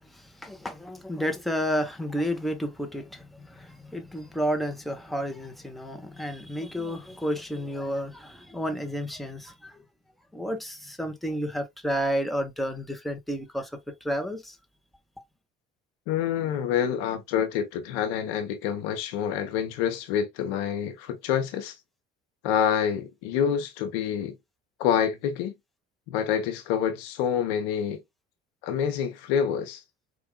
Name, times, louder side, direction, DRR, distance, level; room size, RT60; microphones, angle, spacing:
voice 1, 0.0-9.8 10.3-14.6, equal, ahead, 0.9 m, -31 dB
voice 2, 16.1-21.7 22.4-24.3 24.8-25.5 26.1-28.0 28.6-29.8, left 8 dB, 75° left, 0.8 m, -27 dB
4.4 x 2.5 x 2.3 m
hypercardioid pair, 65°, 31 cm